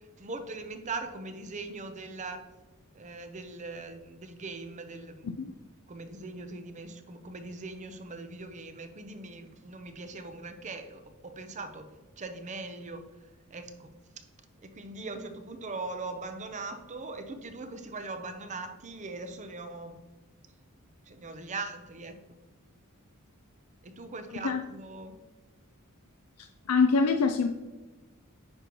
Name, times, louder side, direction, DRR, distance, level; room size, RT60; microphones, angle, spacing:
voice 1, 0.2-2.4 2.9-5.3 5.9-11.9 12.2-13.0 13.5-13.9 14.6-20.0 21.1-22.4 23.8-25.2, right 3 dB, 35° right, 8 dB, 0.7 m, -40 dB
voice 2, 26.4-27.5, left 4 dB, 85° left, 7 dB, 0.5 m, -25 dB
9.7 x 5.3 x 3.0 m, 1.2 s
head